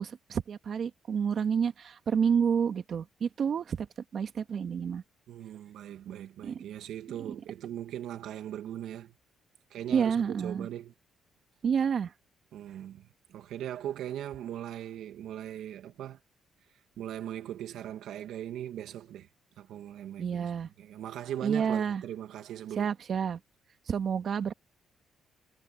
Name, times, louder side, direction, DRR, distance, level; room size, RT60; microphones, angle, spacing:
voice 1, 0.0-3.9 4.1-5.0 6.4-6.5 9.9-10.7 11.6-12.1 20.2-20.7 21.4-22.0 22.8-23.4 23.9-24.5, right 7 dB, 55° right, 2.0 m, -29 dB
voice 2, 5.3-9.1 9.7-10.9 12.5-16.2 17.0-19.3 19.6-20.5 20.8-22.9, right 11 dB, 80° right, 2.3 m, -39 dB
cardioid pair, 90°, 0 cm